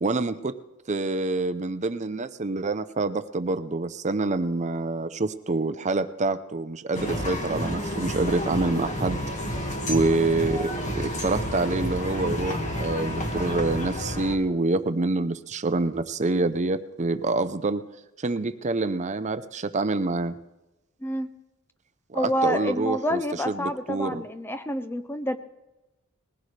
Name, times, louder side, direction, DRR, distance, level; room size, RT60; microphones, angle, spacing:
voice 1, 0.0-0.5 0.9-9.2 9.8-17.8 18.2-20.4 22.1-23.2 23.5-24.2, right 3 dB, 30° right, 11 dB, 0.6 m, -26 dB
sound 1, 6.9-14.4, equal, 35° left, 1.7 m, -30 dB
voice 2, 21.0-21.3 22.1-25.4, equal, 10° left, 10 dB, 0.5 m, -28 dB
20.5 x 15.5 x 3.3 m, 1.0 s
head